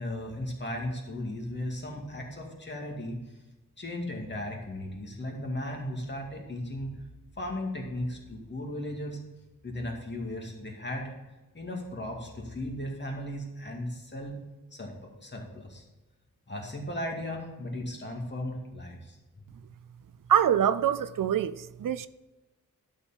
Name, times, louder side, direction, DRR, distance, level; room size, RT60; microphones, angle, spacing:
voice 1, 0.0-3.2 3.8-6.9 7.4-9.2 9.6-11.1 11.5-14.4 14.7-14.9 15.2-15.8 16.5-19.2, left 1 dB, 35° left, 2.3 m, -36 dB
voice 2, 20.3-22.1, right 9 dB, 75° right, 0.5 m, -25 dB
12.0 x 4.7 x 5.7 m
wide cardioid pair, 110°, 33 cm